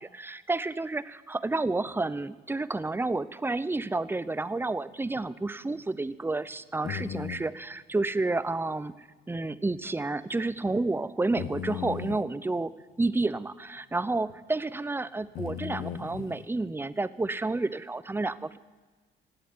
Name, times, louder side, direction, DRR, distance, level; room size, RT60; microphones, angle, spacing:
voice 1, 0.0-12.7 13.0-18.6, right 2 dB, 10° right, 16 dB, 0.6 m, -30 dB
sound 1, 5.2-5.3 5.7-5.8 6.8-7.4 9.4-9.5 9.8-9.9 11.4-12.2 14.3-14.4 15.3-16.5, left 10 dB, 90° left, 0.8 m, -37 dB
17.0 x 7.8 x 9.7 m, 1.3 s
cardioid pair, 90°, 20 cm